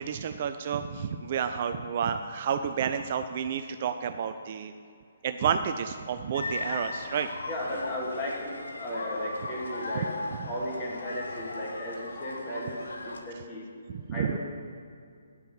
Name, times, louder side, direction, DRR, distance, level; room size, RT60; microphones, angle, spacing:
voice 1, 0.0-4.7 5.2-7.3 9.9-10.1 13.9-14.4, right 7 dB, 40° right, 8 dB, 0.4 m, -30 dB
sound 1, 6.3-13.2, left 2 dB, 70° left, 1.1 m, -37 dB
voice 2, 7.5-10.1 10.5-12.8 13.0-13.7 14.1-14.4, left 1 dB, 15° left, -5 dB, 2.3 m, -35 dB
9.5 x 5.7 x 6.8 m, 2.3 s
figure-of-eight pair, 135°, 0 cm